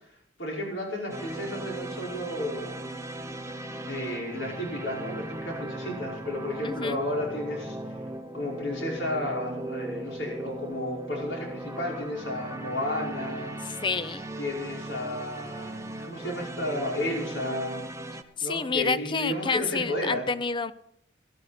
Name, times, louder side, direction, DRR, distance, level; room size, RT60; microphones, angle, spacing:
voice 1, 0.4-2.8 3.9-7.8 8.3-13.5 14.4-17.8 18.4-20.3, left 1 dB, 80° left, -2 dB, 5.2 m, -32 dB
sound 1, 1.1-18.2, right 1 dB, 15° right, 0.8 m, -38 dB
voice 2, 6.6-7.0 13.8-14.3 18.4-20.7, left 4 dB, 25° left, 15 dB, 0.5 m, -28 dB
18.0 x 12.0 x 4.2 m, 0.68 s
head